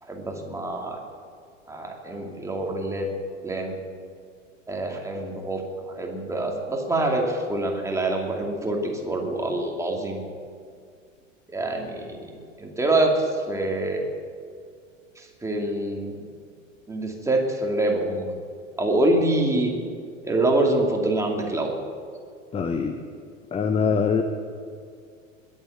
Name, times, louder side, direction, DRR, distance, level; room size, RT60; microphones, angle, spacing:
voice 1, 0.0-1.0 1.7-3.1 3.4-3.8 4.7-10.2 11.5-14.1 15.2-16.2 16.9-18.3 18.8-19.7 20.2-21.7, right 2 dB, 10° right, 0 dB, 2.6 m, -25 dB
voice 2, 22.5-22.9 23.5-24.2, left 5 dB, 15° left, 7 dB, 0.8 m, -23 dB
21.0 x 7.4 x 7.2 m, 2.2 s
figure-of-eight pair, 85°, 39 cm